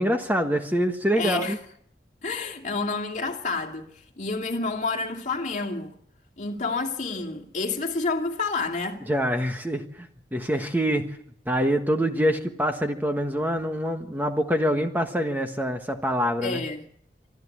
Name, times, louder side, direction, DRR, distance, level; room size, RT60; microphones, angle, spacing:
voice 1, 0.0-1.6 9.1-11.2 11.4-16.6, equal, 10° right, 1.4 m, -25 dB
voice 2, 1.2-1.6 2.2-3.9 4.2-5.9 6.4-9.0 16.4-16.8, left 3 dB, 45° left, 2.5 m, -29 dB
25.5 x 13.0 x 8.6 m
head